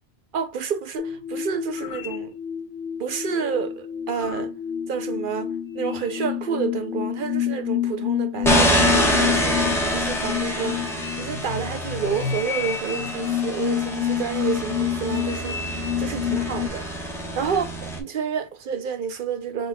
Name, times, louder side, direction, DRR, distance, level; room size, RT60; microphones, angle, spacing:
voice 1, 0.3-2.3 3.0-4.5 4.9-16.8 17.4-19.7, right 6 dB, 55° right, 0.7 m, -29 dB
sound 1, 1.0-16.7, left 10 dB, 75° left, 1.0 m, -28 dB
sound 2, 8.4-18.0, equal, ahead, 1.1 m, -26 dB
5.1 x 4.0 x 2.3 m
omnidirectional pair, 1.1 m